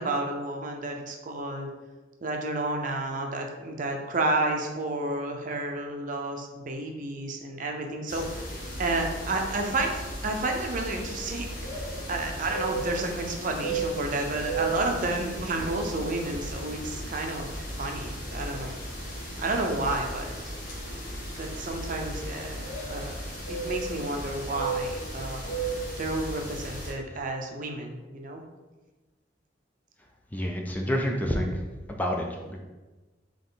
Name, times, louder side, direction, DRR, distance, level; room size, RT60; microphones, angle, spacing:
voice 1, 0.0-1.7 2.2-8.4 8.8-9.9 10.2-11.8 12.1-17.5 17.8-18.8 19.4-20.5 21.4-23.1 23.5-25.5 26.0-28.4, right 2 dB, 45° right, 3 dB, 0.6 m, -31 dB
sound 1, 8.1-26.9, right 2 dB, 50° left, 1.3 m, -35 dB
voice 2, 30.3-31.6 31.9-32.6, equal, 10° left, 0 dB, 0.4 m, -28 dB
3.9 x 3.1 x 3.9 m, 1.2 s
head